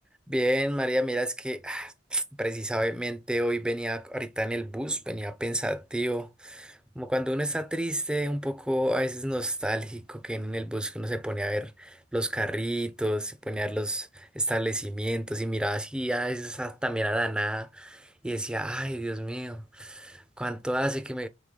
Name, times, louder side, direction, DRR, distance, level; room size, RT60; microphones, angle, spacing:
voice 1, 0.3-21.3, right 1 dB, 5° right, 0.4 m, -30 dB
3.8 x 3.6 x 3.2 m
head